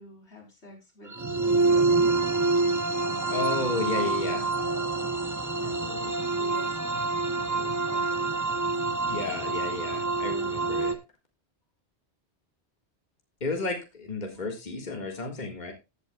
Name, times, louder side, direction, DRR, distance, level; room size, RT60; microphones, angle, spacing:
voice 1, 0.0-1.8 3.0-3.4 3.7-4.2 5.6-8.5 14.2-14.4, left 1 dB, 90° left, 0 dB, 4.6 m, -48 dB
sound 1, 1.1-10.9, right 3 dB, 20° right, 0.8 m, -27 dB
voice 2, 3.3-4.5 9.0-11.0 13.4-15.7, left 3 dB, 45° left, 3 dB, 2.0 m, -33 dB
15.5 x 8.1 x 2.3 m, 0.25 s
omnidirectional pair, 1.1 m